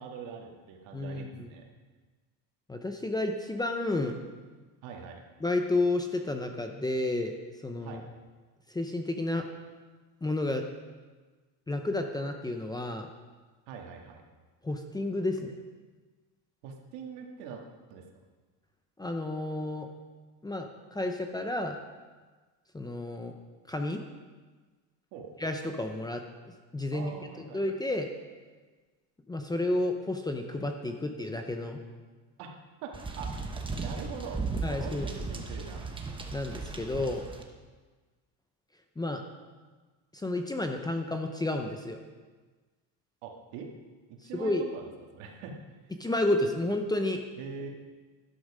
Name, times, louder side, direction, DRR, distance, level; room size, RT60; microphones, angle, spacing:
voice 1, 0.0-1.7 4.8-5.2 7.8-8.0 13.7-14.2 16.6-17.6 17.9-18.0 25.1-25.3 26.9-27.6 32.4-32.5 32.8-33.5 33.8-35.9 43.2-43.7 44.1-44.9 45.1-45.6 47.4-47.7, right 6 dB, 80° right, 2 dB, 2.2 m, -43 dB
voice 2, 0.9-1.5 2.7-4.2 5.4-7.4 7.6-8.0 8.7-9.4 10.2-10.6 11.7-13.1 14.6-15.5 19.0-19.9 20.4-21.8 22.7-23.3 23.7-24.0 25.4-26.2 26.7-27.1 27.5-28.1 29.3-31.8 34.6-35.1 36.3-37.2 39.0-39.2 40.1-42.0 44.3-44.6 46.0-47.2, left 2 dB, 10° left, 4 dB, 0.6 m, -31 dB
sound 1, 32.9-37.4, right 3 dB, 10° right, 1.0 m, -36 dB
12.0 x 12.0 x 5.0 m, 1.4 s
cardioid pair, 155°, 45 cm